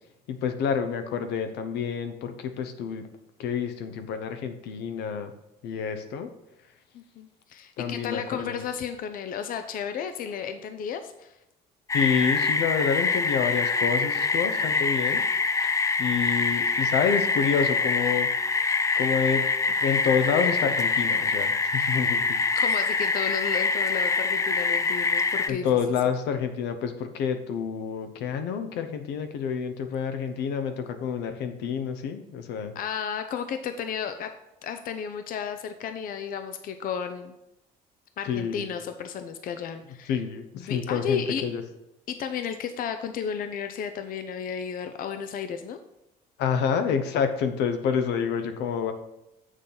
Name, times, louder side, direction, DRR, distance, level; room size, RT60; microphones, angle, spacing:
voice 1, 0.3-3.1 3.4-5.3 5.6-6.3 7.8-8.6 11.9-15.2 16.0-18.3 18.9-19.4 19.8-22.4 25.5-32.7 38.3-38.7 40.1-41.6 46.4-48.9, left 7 dB, 85° left, 7 dB, 0.9 m, -28 dB
voice 2, 6.9-11.3 22.5-25.8 32.7-34.3 34.6-37.3 38.2-40.1 40.5-41.4 42.1-45.8, left 7 dB, 55° left, 8 dB, 0.6 m, -33 dB
sound 1, 11.9-25.5, left 4 dB, 20° left, 0.4 m, -25 dB
7.5 x 6.4 x 3.9 m, 0.88 s
cardioid pair, 110°, 17 cm